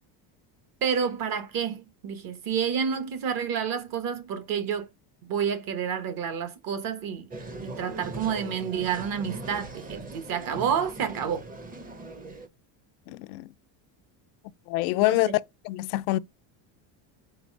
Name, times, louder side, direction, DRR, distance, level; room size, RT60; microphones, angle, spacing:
voice 1, 0.8-4.9 5.2-7.3 7.6-11.4 15.0-15.4, right 7 dB, 45° right, 1.2 m, -29 dB
sound 1, 7.3-12.5, right 2 dB, 15° right, 0.7 m, -40 dB
voice 2, 13.1-13.4 14.7-15.4 15.7-16.2, left 19 dB, 85° left, 0.6 m, -25 dB
4.7 x 4.0 x 5.1 m
cardioid pair, 135°, 48 cm